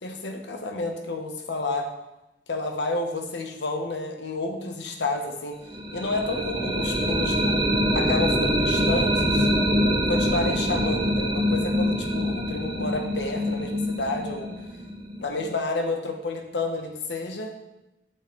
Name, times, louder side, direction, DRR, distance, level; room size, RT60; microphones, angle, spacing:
voice 1, 0.0-1.9 2.5-5.6 5.9-7.6 7.9-9.5 10.1-14.5 15.2-17.5, left 2 dB, 70° left, 4 dB, 1.0 m, -30 dB
sound 1, 5.7-15.5, equal, 25° right, 0.8 m, -25 dB
7.5 x 6.8 x 3.2 m, 0.95 s
head